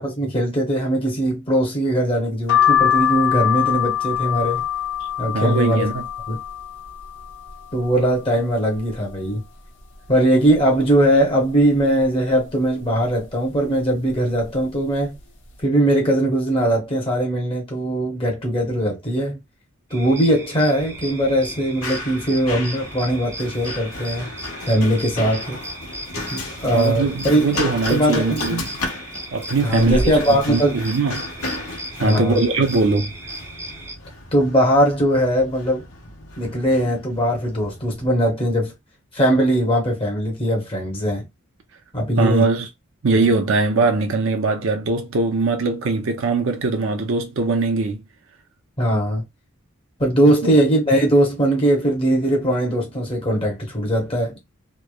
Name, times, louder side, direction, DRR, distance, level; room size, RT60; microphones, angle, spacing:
voice 1, 0.0-4.6 5.2-5.9 6.3-6.4 7.7-9.4 10.1-15.2 15.6-19.4 19.9-24.3 24.6-25.6 26.3-27.5 27.9-28.6 29.6-30.8 32.0-32.4 34.3-35.8 36.4-38.7 39.1-41.2 41.9-42.5 48.8-49.2 50.0-54.4, right 1 dB, 25° left, 0.8 m, -20 dB
sound 1, 2.5-8.2 8.6-9.4 9.8-9.9 10.0-11.2 11.7-12.0 12.8-13.1 13.9-14.1 14.4-14.6, left 10 dB, 60° left, 0.8 m, -23 dB
voice 2, 5.3-6.0 26.7-28.8 29.3-30.0 30.3-31.3 32.0-33.1 42.2-42.7 43.0-48.0 50.4-50.5, right 3 dB, 65° right, 0.5 m, -21 dB
sound 2, 19.9-33.9, right 1 dB, 15° right, 0.5 m, -36 dB
Run, 20.8-38.1, left 2 dB, 90° left, 1.0 m, -33 dB
3.0 x 2.0 x 2.2 m
head